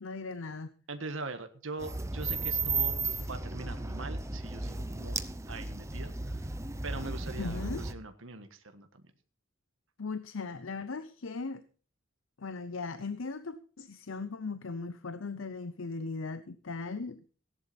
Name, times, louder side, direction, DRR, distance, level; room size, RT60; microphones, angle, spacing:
voice 1, 0.0-0.7 7.4-7.8 10.0-11.6 12.4-17.2, left 4 dB, 70° left, 0.7 m, -38 dB
voice 2, 0.9-5.2 5.5-9.0, right 3 dB, 70° right, 1.6 m, -42 dB
sound 1, 1.8-7.9, right 3 dB, 15° right, 0.8 m, -34 dB
17.0 x 11.0 x 4.1 m
head